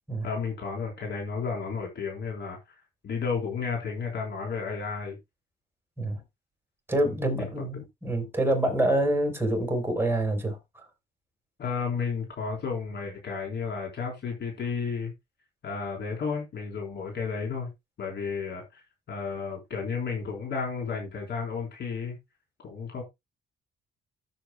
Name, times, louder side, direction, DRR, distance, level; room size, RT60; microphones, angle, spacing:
voice 1, 0.2-2.6 3.0-5.2 7.7-7.8 11.6-15.1 15.6-17.7 18.0-18.8 19.1-22.2 22.6-23.0, left 5 dB, 60° left, 4.0 m, -32 dB
voice 2, 6.9-10.6, right 1 dB, 10° right, 4.5 m, -26 dB
14.5 x 7.4 x 2.3 m
cardioid pair, 90°, 20 cm